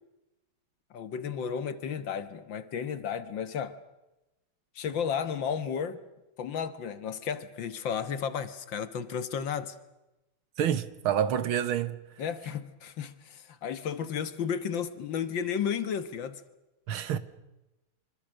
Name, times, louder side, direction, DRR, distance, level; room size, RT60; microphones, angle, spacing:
voice 1, 0.9-3.8 4.8-6.0 6.4-9.8 12.2-16.4, left 7 dB, 65° left, 1.9 m, -33 dB
voice 2, 10.6-12.0 16.9-17.2, right 9 dB, 85° right, 2.0 m, -28 dB
26.0 x 25.0 x 6.4 m
omnidirectional pair, 2.2 m